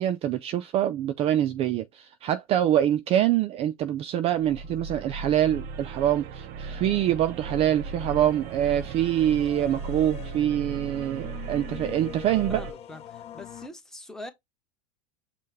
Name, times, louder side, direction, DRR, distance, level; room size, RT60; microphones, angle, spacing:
voice 1, 0.0-12.6, right 11 dB, 30° right, 0.4 m, -25 dB
sound 1, 4.4-12.7, right 5 dB, 50° right, 0.7 m, -37 dB
sound 2, 6.4-13.7, left 10 dB, 30° left, 0.7 m, -45 dB
voice 2, 12.5-14.3, left 2 dB, 5° left, 1.1 m, -42 dB
5.4 x 2.2 x 3.2 m
supercardioid pair, 120°, 19 cm